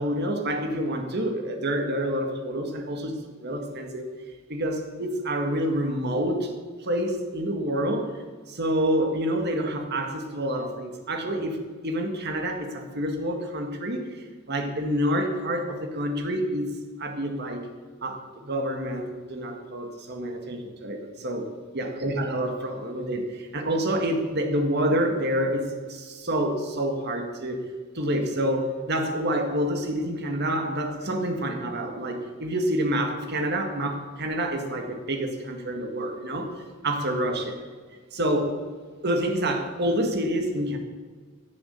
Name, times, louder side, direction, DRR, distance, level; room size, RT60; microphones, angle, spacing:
voice 1, 0.0-4.1 4.5-6.5 6.8-16.7 17.0-17.6 18.0-21.5 21.7-27.6 27.9-36.5 36.8-37.5 38.1-38.6 39.0-40.8, right 1 dB, 55° right, 4 dB, 1.9 m, -28 dB
14.0 x 7.7 x 6.9 m, 1.5 s
head